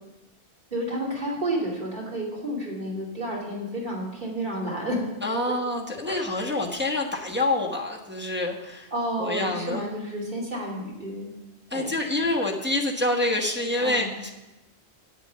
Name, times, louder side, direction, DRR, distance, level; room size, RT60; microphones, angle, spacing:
voice 1, 0.7-5.0 5.5-5.6 6.1-6.2 8.9-11.3 11.7-12.0 13.8-14.1, right 1 dB, 45° right, -3 dB, 2.9 m, -31 dB
voice 2, 5.2-8.9 9.2-9.8 11.7-14.3, left 2 dB, 10° right, -2 dB, 1.2 m, -27 dB
9.2 x 8.2 x 6.7 m, 1.0 s
omnidirectional pair, 1.1 m